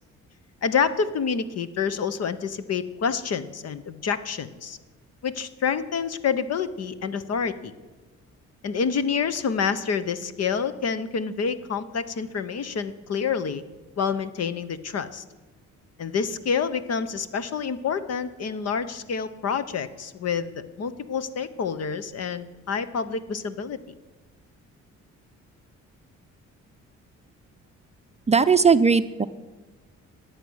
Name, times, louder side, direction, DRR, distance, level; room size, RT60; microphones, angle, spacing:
voice 1, 0.6-4.8 5.2-7.7 8.6-13.6 14.0-15.2 16.0-23.8, left 6 dB, 55° left, 13 dB, 1.0 m, -28 dB
voice 2, 28.3-29.3, right 5 dB, 20° right, 10 dB, 0.5 m, -18 dB
14.5 x 9.7 x 6.4 m, 1.3 s
cardioid pair, 90°, 30 cm